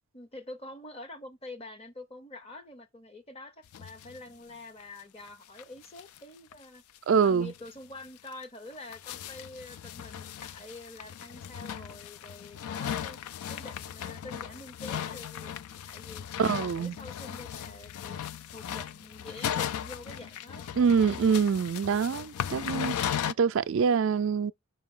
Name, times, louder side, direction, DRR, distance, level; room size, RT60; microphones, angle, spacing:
voice 1, 0.1-6.8 7.2-13.2 13.5-16.3 16.6-18.2 18.5-20.7, left 2 dB, 25° left, 0.8 m, -46 dB
sound 1, 3.7-4.2 4.5-4.6 4.8-4.9 5.3-5.4 5.6-6.2 6.5-6.6 7.0-7.1 7.5-7.7 8.3-23.3, left 9 dB, 75° left, 0.3 m, -37 dB
voice 2, 7.1-7.5 16.4-17.0 20.8-24.5, right 6 dB, 60° right, 0.4 m, -25 dB
5.6 x 5.2 x 3.7 m
head